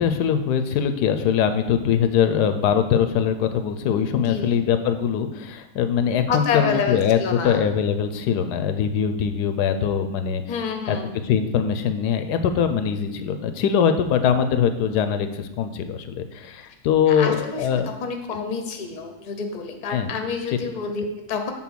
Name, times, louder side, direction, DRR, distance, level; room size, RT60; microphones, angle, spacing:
voice 1, 0.0-10.6 10.9-11.0 11.2-17.9 19.9-20.1, left 8 dB, 90° left, 8 dB, 1.2 m, -22 dB
voice 2, 4.2-4.5 6.3-7.6 10.5-11.1 17.1-21.5, left 5 dB, 40° left, 5 dB, 0.6 m, -28 dB
7.5 x 3.7 x 6.1 m, 0.96 s
omnidirectional pair, 1.7 m